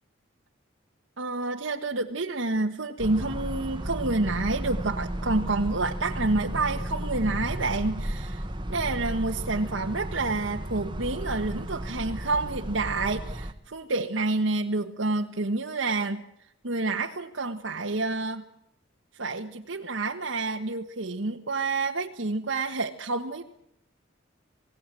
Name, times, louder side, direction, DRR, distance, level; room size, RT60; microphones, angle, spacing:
voice 1, 1.2-16.2 16.6-18.4 19.1-23.4, right 3 dB, 75° right, 2 dB, 1.5 m, -29 dB
sound 1, 3.0-13.5, right 1 dB, 25° right, 1.5 m, -34 dB
27.5 x 18.5 x 7.6 m, 0.78 s
head